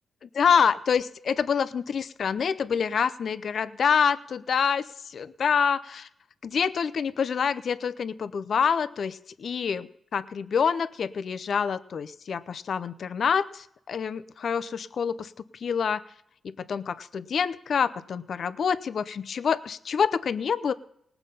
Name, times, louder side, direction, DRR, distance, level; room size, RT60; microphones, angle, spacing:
voice 1, 0.3-6.1 6.4-15.3 15.6-16.0 16.4-20.7, left 6 dB, 65° left, 14 dB, 0.7 m, -26 dB
19.0 x 7.1 x 5.4 m, 0.72 s
cardioid pair, 85°, 0 cm